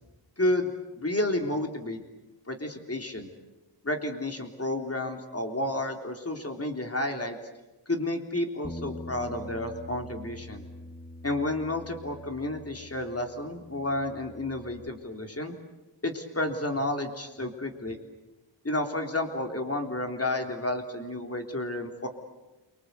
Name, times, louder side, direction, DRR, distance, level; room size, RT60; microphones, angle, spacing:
voice 1, 0.4-2.0 2.5-3.3 3.8-7.4 7.9-10.7 11.2-15.5 16.0-18.0 18.6-22.1, left 1 dB, 30° left, 4 dB, 3.6 m, -31 dB
Bass guitar, 8.6-14.9, left 1 dB, 10° left, 1.3 m, -44 dB
29.0 x 25.0 x 8.3 m, 1.1 s
wide cardioid pair, 70°, 44 cm